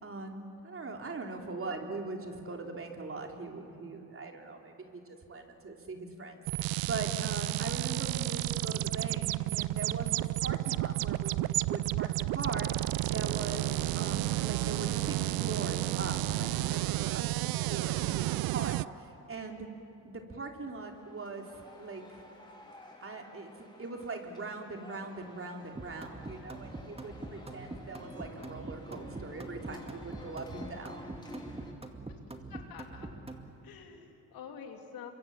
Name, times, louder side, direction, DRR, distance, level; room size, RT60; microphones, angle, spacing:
voice 1, 0.0-19.7 20.0-22.2 23.0-31.0, right 3 dB, 35° right, 2 dB, 3.3 m, -41 dB
sound 1, 6.4-18.8, right 18 dB, 75° right, 0.5 m, -31 dB
sound 2, 20.6-31.7, left 1 dB, 10° left, 4.4 m, -52 dB
sound 3, 25.8-33.5, right 2 dB, 15° right, 2.1 m, -43 dB
voice 2, 32.5-33.1 33.6-35.1, left 7 dB, 75° left, 3 dB, 2.9 m, -47 dB
26.5 x 23.5 x 7.1 m, 2.8 s
supercardioid pair, 65°, 36 cm